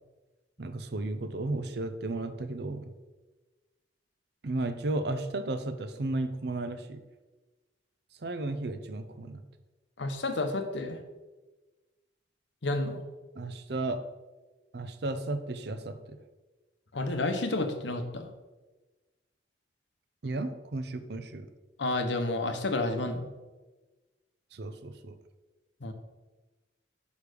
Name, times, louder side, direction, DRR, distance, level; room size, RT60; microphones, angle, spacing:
voice 1, 0.6-2.9 4.4-7.0 8.2-9.4 13.3-14.0 14.7-16.2 20.2-21.5 24.5-25.2, right 2 dB, 60° right, 9 dB, 0.6 m, -34 dB
voice 2, 10.0-11.0 12.6-13.0 16.9-18.3 21.8-23.3 25.8-25.9, left 2 dB, 70° left, 7 dB, 0.8 m, -30 dB
6.5 x 5.1 x 5.0 m, 1.2 s
head